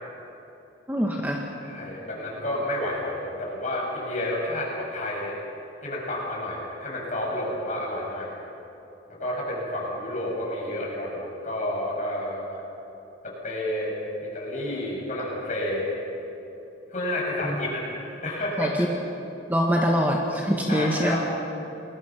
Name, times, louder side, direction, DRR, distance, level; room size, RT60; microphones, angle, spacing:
voice 1, 0.9-1.4 17.4-17.5 18.6-18.7 19.5-21.2, equal, 10° right, 0 dB, 1.6 m, -23 dB
voice 2, 1.6-5.3 5.8-8.3 9.1-12.6 13.4-15.8 16.9-18.9 20.7-21.2, left 1 dB, 40° left, -3 dB, 7.0 m, -30 dB
28.5 x 20.5 x 6.1 m, 3.0 s
head